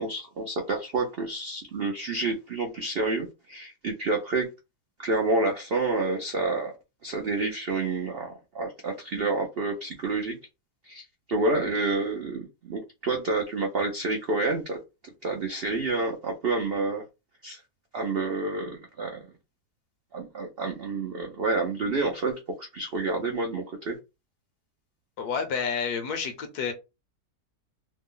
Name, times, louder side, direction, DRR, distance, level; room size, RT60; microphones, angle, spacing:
voice 1, 0.0-4.5 5.0-6.7 7.0-10.4 10.9-14.8 15.2-17.0 17.4-17.6 17.9-19.2 20.1-24.0, right 3 dB, 80° right, 0.5 m, -29 dB
voice 2, 25.2-26.7, left 6 dB, 70° left, 1.2 m, -29 dB
3.2 x 2.1 x 3.7 m
omnidirectional pair, 1.8 m